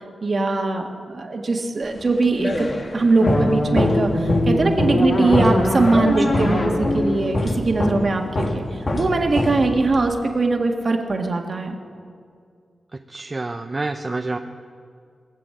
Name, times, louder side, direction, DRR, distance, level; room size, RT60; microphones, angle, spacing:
voice 1, 0.2-2.7 2.9-8.6 8.9-11.8, right 3 dB, 45° right, 3 dB, 1.7 m, -21 dB
sound 1, 2.0-10.1, left 1 dB, 40° left, 1.5 m, -25 dB
sound 2, 3.2-8.3, left 1 dB, 55° left, 2.3 m, -23 dB
voice 2, 13.1-14.4, right 2 dB, 30° right, 5 dB, 0.6 m, -28 dB
21.5 x 7.6 x 7.7 m, 2.2 s
cardioid pair, 85°, 0 cm